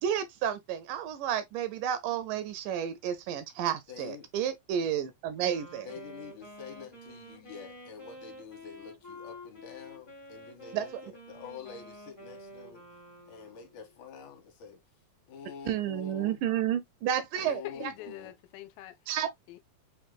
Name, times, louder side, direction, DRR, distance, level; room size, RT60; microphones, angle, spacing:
voice 1, 0.0-5.9 10.7-11.0 15.7-17.9 19.1-19.3, right 9 dB, 80° right, 2.0 m, -31 dB
voice 2, 3.9-4.3 5.8-12.8 13.3-14.8 15.3-16.4 17.4-18.3, left 6 dB, 70° left, 2.3 m, -47 dB
Wind instrument woodwind instrument, 5.3-14.0, equal, 25° left, 0.5 m, -49 dB
voice 3, 17.4-19.0 19.5-19.6, left 16 dB, 85° left, 2.3 m, -44 dB
6.5 x 2.7 x 2.3 m
omnidirectional pair, 4.0 m